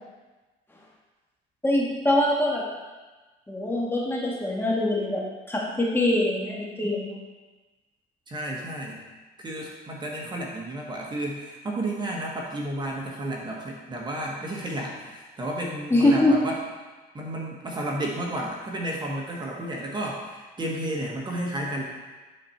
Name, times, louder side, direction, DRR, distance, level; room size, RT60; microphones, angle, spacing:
voice 1, 1.6-2.6 3.5-5.2 5.5-7.2 15.9-16.4, left 1 dB, 15° left, -3 dB, 1.6 m, -23 dB
voice 2, 8.3-9.0 9.4-16.6 17.1-21.8, right 1 dB, 25° right, -2 dB, 1.4 m, -32 dB
10.0 x 4.2 x 4.4 m, 1.2 s
cardioid pair, 110°, 17 cm